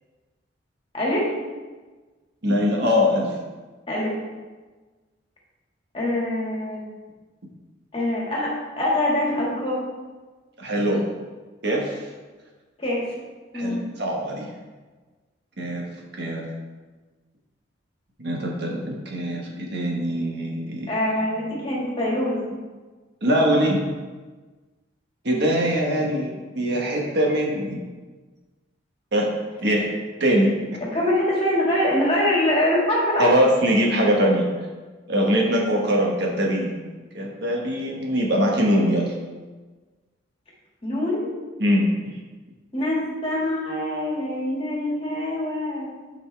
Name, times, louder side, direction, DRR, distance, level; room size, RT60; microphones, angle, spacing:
voice 1, 0.9-1.3 3.9-4.1 5.9-6.8 7.9-9.8 12.8-13.1 13.5-13.8 20.9-22.6 30.8-33.3 40.8-41.3 42.7-45.9, left 1 dB, 30° left, -4 dB, 2.0 m, -24 dB
voice 2, 2.4-3.3 10.6-11.0 11.6-12.1 13.5-14.5 15.6-15.8 16.2-16.4 18.2-20.9 23.2-23.8 25.2-27.8 29.1-29.3 29.6-29.9 30.2-30.5 33.2-34.5 35.1-36.7 37.1-39.1 41.6-42.2, equal, 55° right, -1 dB, 1.4 m, -22 dB
10.5 x 5.5 x 3.4 m, 1.3 s
head